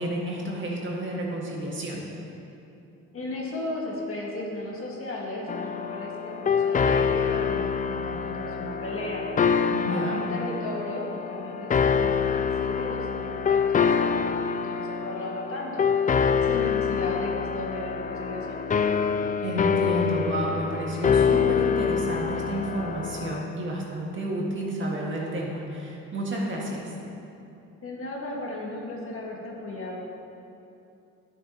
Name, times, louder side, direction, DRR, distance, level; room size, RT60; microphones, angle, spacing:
voice 1, 0.0-2.0 9.7-10.2 19.4-26.9, right 1 dB, 40° right, -3 dB, 1.9 m, -31 dB
voice 2, 3.1-9.3 9.9-15.8 16.4-18.6 27.8-30.2, left 2 dB, 45° left, -3 dB, 1.9 m, -35 dB
sound 1, 5.5-23.4, left 6 dB, 30° left, 0.3 m, -26 dB
12.0 x 7.3 x 3.0 m, 2.7 s
cardioid pair, 90°, 30 cm